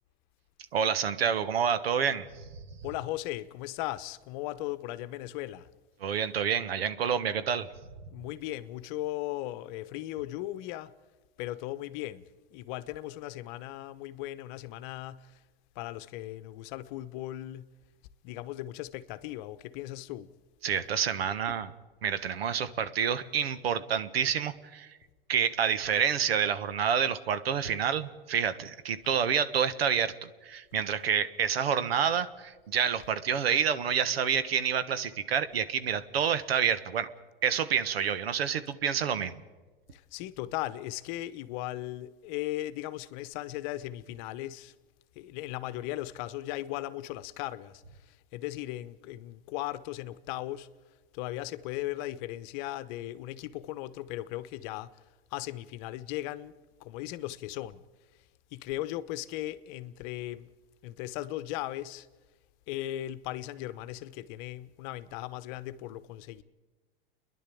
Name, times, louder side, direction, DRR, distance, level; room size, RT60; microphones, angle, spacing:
voice 1, 0.7-2.5 6.0-7.7 20.6-21.7 22.0-24.9 25.3-37.1 37.4-39.3, right 7 dB, 85° right, 1.3 m, -28 dB
voice 2, 2.8-5.7 8.1-10.9 11.4-12.2 12.5-15.4 15.7-17.7 18.2-20.3 39.9-44.7 45.1-50.7 51.1-54.9 55.3-56.5 56.8-57.8 58.5-60.5 60.8-62.1 62.7-66.4, left 15 dB, 50° left, 1.0 m, -37 dB
29.5 x 11.0 x 8.5 m
hypercardioid pair, 115°, 30 cm